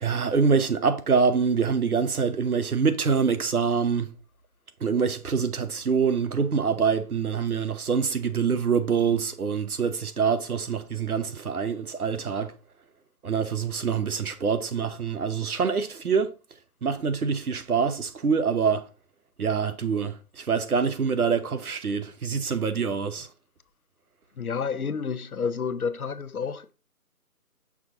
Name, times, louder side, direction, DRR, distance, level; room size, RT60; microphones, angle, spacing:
voice 1, 0.0-4.1 4.8-12.5 13.2-16.3 16.8-18.8 19.4-23.3, right 5 dB, 70° right, 1.0 m, -25 dB
voice 2, 24.4-26.7, left 6 dB, 70° left, 0.7 m, -30 dB
6.1 x 4.3 x 3.7 m
figure-of-eight pair, 165°, 46 cm